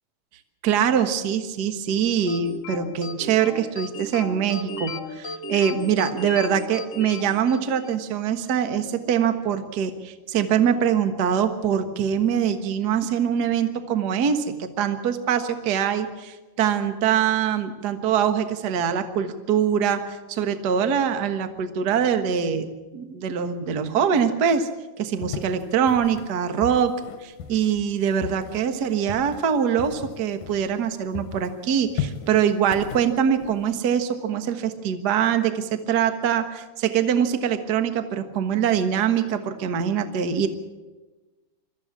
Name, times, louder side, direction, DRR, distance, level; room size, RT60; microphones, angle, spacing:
voice 1, 0.6-22.7 22.9-24.7 25.0-26.9 27.2-40.5, right 8 dB, 50° right, 8 dB, 1.2 m, -23 dB
sound 1, 2.3-8.0, left 3 dB, 40° left, 1.8 m, -35 dB
sound 2, 25.2-30.9 31.1-34.0, left 7 dB, 70° left, 2.2 m, -36 dB
24.0 x 14.0 x 8.4 m, 1.2 s
omnidirectional pair, 3.9 m